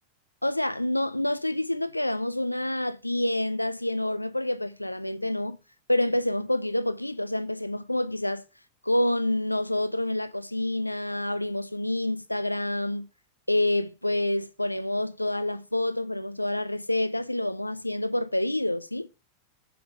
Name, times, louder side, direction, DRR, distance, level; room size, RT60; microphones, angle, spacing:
voice 1, 0.4-5.6 5.9-8.4 8.8-13.1 13.5-19.1, left 1 dB, 85° left, 0.6 m, -27 dB
7.6 x 7.0 x 7.6 m
figure-of-eight pair, 90°, 0 cm